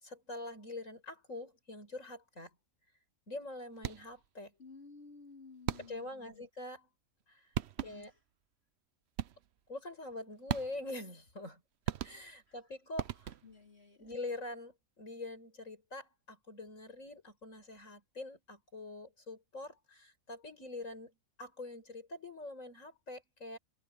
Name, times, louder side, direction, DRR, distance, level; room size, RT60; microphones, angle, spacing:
voice 1, 0.0-2.5 3.3-4.5 5.9-6.9 7.3-7.5 7.8-8.1 9.7-11.6 12.0-13.3 14.0-21.1 21.4-23.6, left 2 dB, 65° left, 6.2 m, -45 dB
sound 1, 3.8-4.3 5.7-6.2 7.2-7.3 7.5-8.2 9.2-9.6 10.5-11.0 11.8-12.5 13.0-13.7, right 10 dB, 60° right, 0.9 m, -39 dB
voice 2, 4.6-6.5 7.8-8.2 12.5-12.6 13.4-14.1, left 4 dB, 50° left, 3.8 m, -55 dB
open air
omnidirectional pair, 1.4 m